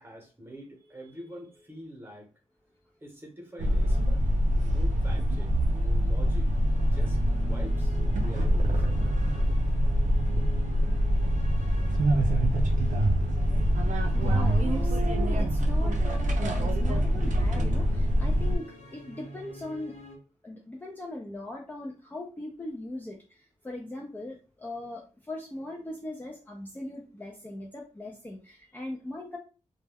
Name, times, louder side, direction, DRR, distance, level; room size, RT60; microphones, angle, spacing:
voice 1, 0.0-2.3 3.0-4.2 4.6-6.5 6.9-9.2, equal, 15° right, 0 dB, 0.9 m, -46 dB
sound 1, 3.6-18.5, equal, 80° right, 0.5 m, -25 dB
sound 2, 6.3-20.2, left 1 dB, 65° left, 0.8 m, -40 dB
voice 2, 14.1-20.0 20.4-29.4, left 2 dB, 15° left, -1 dB, 0.4 m, -40 dB
2.2 x 2.1 x 3.3 m, 0.33 s
wide cardioid pair, 145°, 13 cm